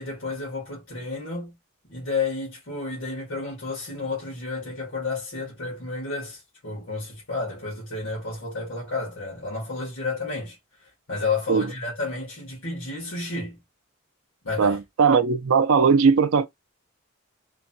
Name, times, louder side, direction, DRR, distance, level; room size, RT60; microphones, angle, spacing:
voice 1, 0.0-1.5 1.9-10.6 11.1-13.6 14.4-14.8, left 3 dB, 70° left, 1.4 m, -31 dB
voice 2, 14.6-16.5, right 5 dB, 80° right, 0.5 m, -19 dB
3.1 x 2.2 x 2.6 m
head